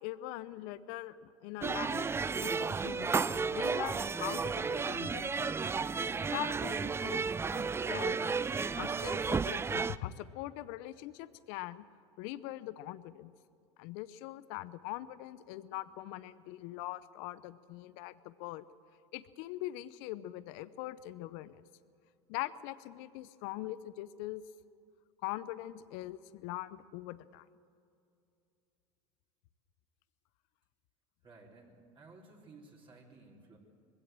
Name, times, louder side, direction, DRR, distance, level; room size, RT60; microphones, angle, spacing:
voice 1, 0.0-2.1 2.4-3.2 3.5-5.5 6.3-8.4 8.8-11.9 12.2-13.3 13.8-18.6 19.1-21.6 22.3-24.4 25.2-27.4, left 15 dB, 65° left, 15 dB, 0.8 m, -42 dB
sound 1, 1.6-10.0, right 5 dB, 15° right, 0.5 m, -33 dB
voice 2, 31.2-33.6, right 3 dB, 35° right, -2 dB, 3.8 m, -56 dB
21.0 x 16.5 x 7.6 m, 2.5 s
hypercardioid pair, 95°, 15 cm